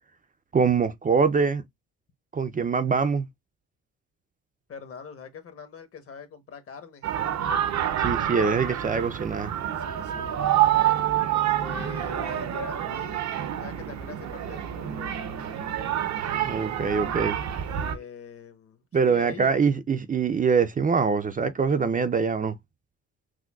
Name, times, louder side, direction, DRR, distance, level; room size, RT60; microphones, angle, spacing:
voice 1, 0.5-1.6 2.3-3.3 8.0-9.5 16.4-17.4 18.9-22.6, right 5 dB, 30° right, 0.4 m, -24 dB
voice 2, 4.7-7.5 8.8-9.2 9.8-10.4 11.5-13.3 13.6-15.1 17.7-19.6, left 7 dB, 50° left, 1.0 m, -43 dB
sound 1, 7.0-18.0, right 11 dB, 65° right, 0.7 m, -27 dB
6.1 x 2.2 x 2.3 m
cardioid pair, 90°, 30 cm